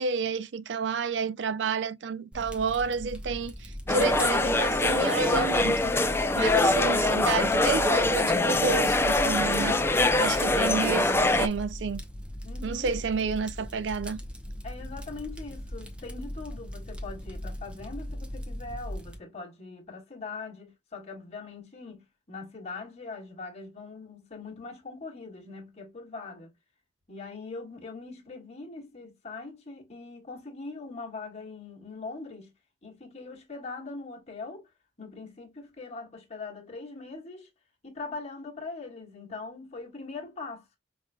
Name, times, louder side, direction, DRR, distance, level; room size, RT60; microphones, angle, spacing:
voice 1, 0.0-9.8 10.2-12.0 12.6-14.2, right 5 dB, 75° right, 0.4 m, -30 dB
Fire, 2.3-19.2, equal, 5° right, 0.7 m, -39 dB
sound 1, 3.9-11.5, left 2 dB, 15° left, 0.4 m, -24 dB
voice 2, 12.4-13.0 14.6-26.5 27.1-32.5 32.8-34.7 35.0-37.5 37.8-40.8, left 3 dB, 35° left, 1.5 m, -41 dB
5.4 x 2.6 x 2.2 m
head